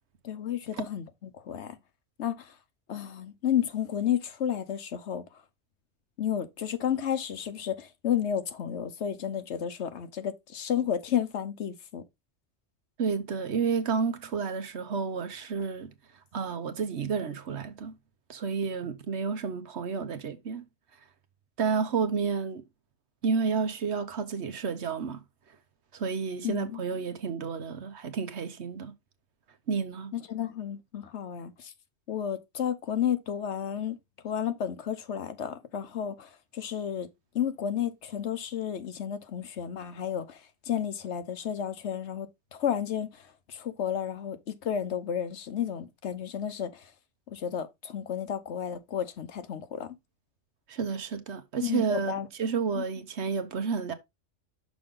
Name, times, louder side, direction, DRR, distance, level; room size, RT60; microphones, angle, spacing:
voice 1, 0.2-1.8 2.2-2.5 2.9-5.2 6.2-12.0 26.4-26.8 30.1-31.7 32.1-34.0 34.2-37.1 37.3-40.4 40.7-46.9 47.3-49.9 51.6-52.3 52.8-52.9, left 9 dB, 65° left, 1.1 m, -32 dB
voice 2, 13.0-15.9 16.3-17.9 18.3-20.6 21.6-22.6 23.2-25.2 25.9-28.9 29.7-30.1 50.7-53.9, right 5 dB, 65° right, 1.2 m, -30 dB
6.2 x 5.3 x 3.6 m
omnidirectional pair, 1.3 m